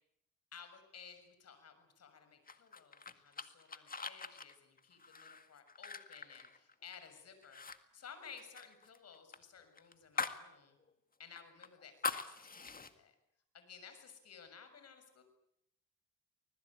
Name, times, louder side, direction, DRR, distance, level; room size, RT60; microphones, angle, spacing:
voice 1, 0.5-7.6 7.9-10.8 11.2-13.1 13.5-15.2, left 6 dB, 55° left, 8 dB, 6.9 m, -56 dB
sound 1, 2.5-7.1 7.4-7.8 8.0-10.5 10.8-10.9 11.4-12.9, left 4 dB, 30° left, 2.0 m, -43 dB
25.5 x 20.5 x 8.8 m, 0.80 s
cardioid pair, 90°, 30 cm